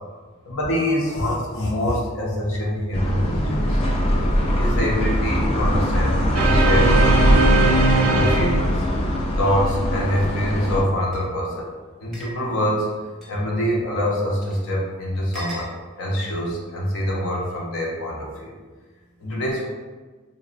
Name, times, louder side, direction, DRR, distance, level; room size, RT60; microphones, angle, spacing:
voice 1, 0.4-3.8 4.5-6.9 8.1-8.9 9.4-11.7 12.0-12.9 13.3-15.7 16.0-18.6 19.2-19.7, equal, 70° left, -3 dB, 0.6 m, -25 dB
sound 1, 2.9-10.8, equal, 25° left, 0.3 m, -21 dB
sound 2, 6.3-9.1, right 3 dB, 85° right, 0.4 m, -20 dB
sound 3, 11.1-11.2 12.1-12.3 13.2-13.3 14.4-14.5 15.3-15.7, right 1 dB, ahead, 0.7 m, -37 dB
3.9 x 2.1 x 2.4 m, 1.4 s
head